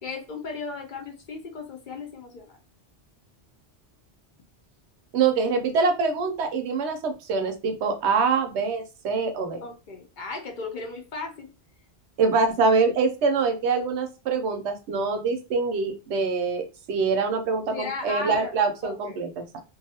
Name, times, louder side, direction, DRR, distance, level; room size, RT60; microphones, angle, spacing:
voice 1, 0.0-2.5 9.6-11.5 17.7-18.5 18.8-19.2, left 3 dB, 55° left, 2 dB, 0.7 m, -35 dB
voice 2, 5.1-9.6 12.2-19.6, right 4 dB, 85° right, 6 dB, 0.9 m, -24 dB
2.5 x 2.3 x 2.7 m, 0.30 s
omnidirectional pair, 1.1 m